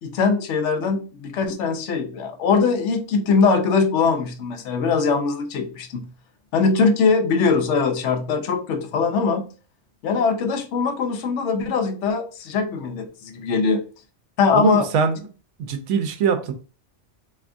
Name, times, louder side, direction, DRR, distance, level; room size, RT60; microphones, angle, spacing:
voice 1, 0.0-6.0 6.5-9.5 10.0-13.8 14.4-14.9, left 5 dB, 75° left, 6 dB, 0.9 m, -21 dB
voice 2, 14.5-15.2 15.6-16.5, right 6 dB, 80° right, 7 dB, 0.9 m, -22 dB
3.4 x 2.7 x 2.5 m, 0.37 s
omnidirectional pair, 1.2 m